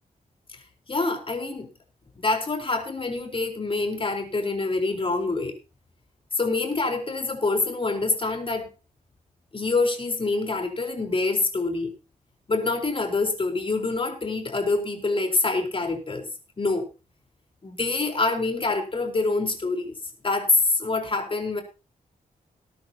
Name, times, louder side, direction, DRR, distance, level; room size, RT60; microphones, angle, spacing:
voice 1, 0.9-1.7 2.2-5.5 6.4-8.7 9.5-11.9 12.5-16.2 16.6-16.9 17.6-19.9 20.2-21.6, left 3 dB, 35° left, 4.2 m, -26 dB
20.0 x 10.5 x 2.9 m
wide cardioid pair, 90°, 15 cm